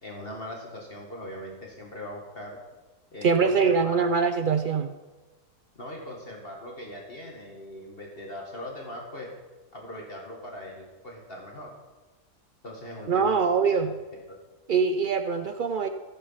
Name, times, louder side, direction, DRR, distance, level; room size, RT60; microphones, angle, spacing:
voice 1, 0.0-2.6 3.1-4.1 5.8-9.3 9.7-11.7 12.6-13.4 13.7-14.2, left 1 dB, 40° left, -1 dB, 1.9 m, -40 dB
voice 2, 3.2-4.9 13.1-13.9 14.7-15.9, right 5 dB, 85° right, 8 dB, 0.4 m, -23 dB
16.0 x 8.2 x 5.6 m, 1.2 s
omnidirectional pair, 1.6 m